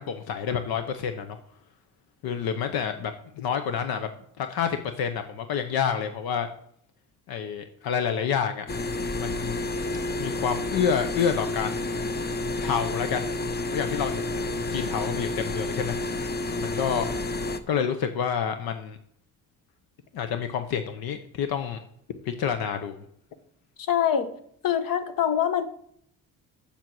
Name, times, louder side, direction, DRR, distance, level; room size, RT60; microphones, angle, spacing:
voice 1, 0.0-1.4 2.2-4.1 4.4-6.5 7.3-8.7 9.2-9.6 10.2-11.9 12.6-13.3 13.7-16.0 16.6-17.1 17.7-19.0 20.1-21.8 22.3-23.0, left 7 dB, 85° left, 8 dB, 0.9 m, -28 dB
sound 1, 8.7-17.6, left 2 dB, 25° left, 0.7 m, -30 dB
voice 2, 23.8-24.3 24.6-25.6, left 9 dB, 65° left, 10 dB, 1.2 m, -24 dB
7.5 x 7.0 x 7.7 m, 0.66 s
cardioid pair, 140°, 36 cm